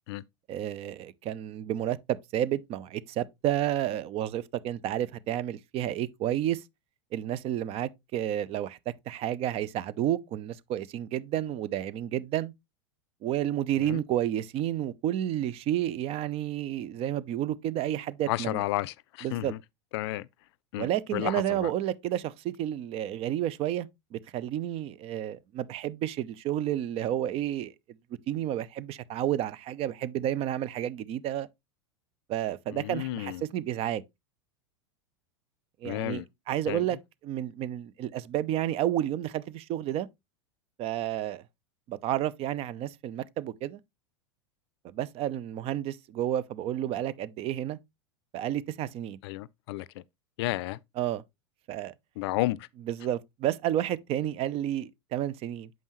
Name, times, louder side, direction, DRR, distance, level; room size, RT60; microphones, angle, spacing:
voice 1, 0.5-6.6 7.1-12.5 13.2-18.6 19.2-19.5 20.8-27.7 28.3-31.5 32.3-34.0 35.8-37.0 37.2-40.1 40.8-41.4 41.9-43.8 44.8-47.8 48.3-49.2 51.0-51.2 51.7-51.9 52.9-55.7, right 12 dB, 40° right, 0.6 m, -31 dB
voice 2, 18.3-19.6 19.9-20.3 20.7-21.7 32.7-33.4 35.8-36.2 36.7-36.8 49.2-50.0 50.4-50.8 52.2-52.7, left 17 dB, 65° left, 0.4 m, -32 dB
7.6 x 5.4 x 3.0 m
hypercardioid pair, 100°, 15 cm